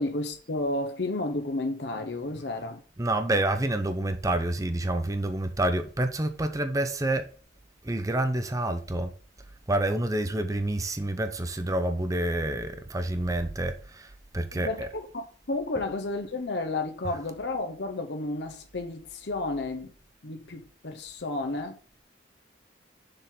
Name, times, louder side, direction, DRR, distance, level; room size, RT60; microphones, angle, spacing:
voice 1, 0.0-2.8 14.5-19.9 20.2-21.8, left 2 dB, 65° left, 0.8 m, -32 dB
voice 2, 3.0-7.3 7.8-9.1 9.7-14.9 17.0-17.1, right 1 dB, 20° right, 0.6 m, -28 dB
6.8 x 3.8 x 5.7 m
head